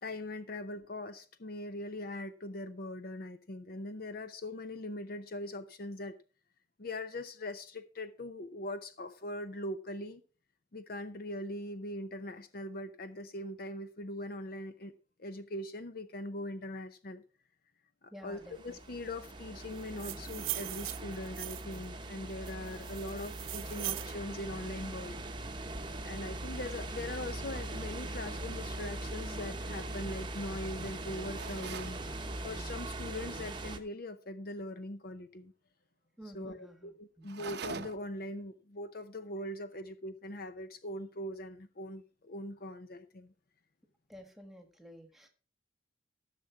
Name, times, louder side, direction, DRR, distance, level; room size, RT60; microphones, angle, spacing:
voice 1, 0.0-6.2 6.8-10.2 10.7-14.9 15.2-17.2 18.0-25.2 26.0-32.0 32.4-35.5 36.3-43.3, left 1 dB, 45° left, 0.6 m, -41 dB
voice 2, 18.1-18.8 36.2-37.3 44.1-45.3, equal, ahead, 1.5 m, -52 dB
sound 1, 18.3-33.8, right 2 dB, 25° right, 0.9 m, -41 dB
sound 2, 19.8-21.8 22.4-24.1, right 19 dB, 85° right, 0.4 m, -40 dB
sound 3, 31.3-32.0 37.2-38.2, right 5 dB, 55° right, 0.7 m, -42 dB
14.0 x 6.6 x 4.6 m
head